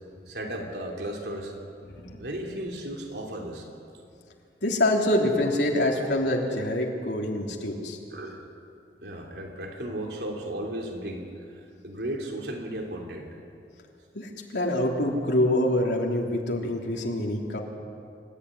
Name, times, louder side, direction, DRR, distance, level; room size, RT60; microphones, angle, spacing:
voice 1, 0.3-1.5 2.2-3.7 8.1-8.5 9.0-13.3, right 1 dB, 75° right, 1 dB, 3.0 m, -35 dB
voice 2, 4.6-8.0 14.2-17.6, left 1 dB, 80° left, 0 dB, 3.5 m, -25 dB
26.5 x 14.5 x 9.8 m, 2.4 s
head